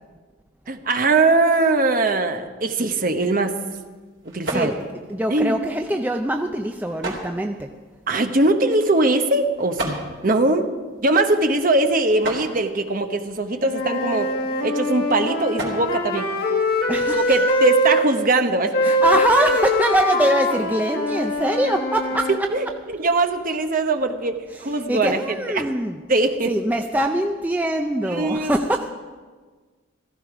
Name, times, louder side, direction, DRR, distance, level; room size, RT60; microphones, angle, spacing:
voice 1, 0.7-3.6 4.2-4.7 5.3-5.6 8.1-10.0 10.2-10.7 11.0-14.3 14.6-16.3 17.1-19.0 19.5-19.6 22.3-25.6 26.1-26.6 28.0-28.5, right 2 dB, 40° right, 6 dB, 1.0 m, -21 dB
sound 1, 2.8-17.2, right 2 dB, 60° right, 3.5 m, -38 dB
voice 2, 5.1-7.7 16.9-17.3 18.8-22.3 24.5-26.0 26.5-28.9, right 1 dB, 10° right, 4 dB, 0.5 m, -23 dB
Wind instrument woodwind instrument, 13.6-18.0 18.7-22.4, left 1 dB, 50° left, 1.7 m, -23 dB
15.5 x 15.0 x 4.9 m, 1.4 s
head